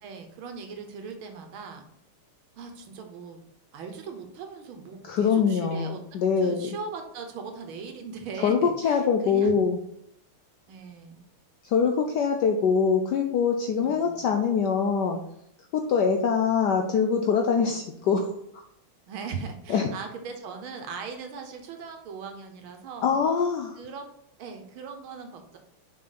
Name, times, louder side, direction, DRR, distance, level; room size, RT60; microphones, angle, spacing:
voice 1, 0.0-1.8 2.6-3.4 3.7-6.0 6.4-9.5 10.7-11.2 13.8-14.2 19.1-23.2 23.8-24.0 24.4-25.6, right 5 dB, 75° right, 5 dB, 1.7 m, -39 dB
voice 2, 5.0-6.7 8.4-9.8 11.6-15.2 15.7-18.3 19.7-19.9 23.0-23.8, left 6 dB, 80° left, 4 dB, 0.9 m, -24 dB
6.2 x 4.2 x 4.1 m, 0.75 s
omnidirectional pair, 2.4 m